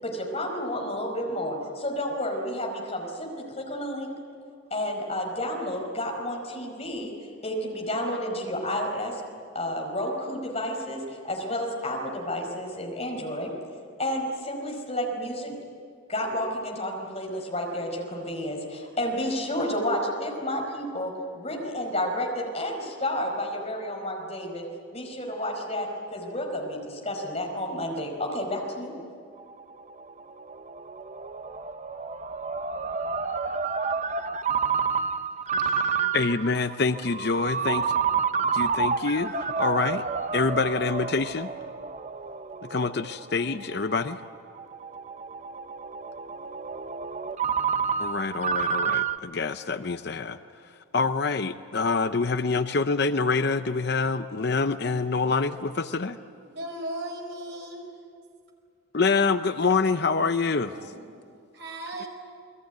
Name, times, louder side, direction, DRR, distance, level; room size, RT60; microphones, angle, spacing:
voice 1, 0.0-4.1 4.7-7.1 7.4-9.2 9.5-13.5 14.0-15.6 16.1-24.7 24.9-29.0, left 1 dB, 30° left, 1 dB, 5.0 m, -31 dB
Ringtone, 29.4-49.2, right 5 dB, 35° right, 0.7 m, -29 dB
voice 2, 35.6-37.9 38.5-40.0 40.3-41.5 42.7-44.2 48.0-50.4 50.9-56.2 58.9-60.7, left 4 dB, 55° left, 10 dB, 0.7 m, -26 dB
voice 3, 56.5-58.0 60.7-61.2 61.5-62.1, right 1 dB, 60° right, 2 dB, 5.4 m, -37 dB
29.5 x 21.0 x 9.4 m, 2.3 s
head